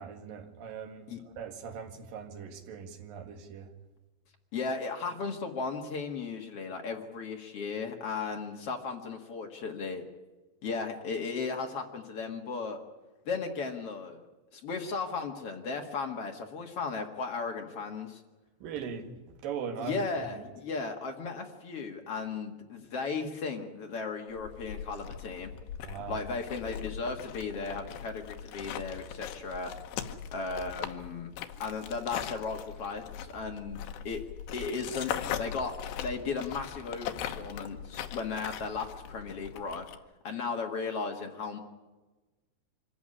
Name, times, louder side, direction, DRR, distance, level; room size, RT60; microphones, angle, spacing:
voice 1, 0.0-3.7 18.6-20.0 20.3-20.4 25.8-26.2, right 6 dB, 60° right, 3.3 m, -40 dB
voice 2, 4.5-10.0 10.6-12.8 13.3-14.2 14.5-18.2 19.8-25.5 26.1-29.7 30.3-31.3 31.6-34.2 34.5-35.1 35.4-39.9 40.2-41.6, left 4 dB, 55° left, 1.8 m, -36 dB
sound 1, 24.4-40.0, left 10 dB, 80° left, 3.2 m, -40 dB
25.0 x 14.5 x 9.9 m
omnidirectional pair, 4.9 m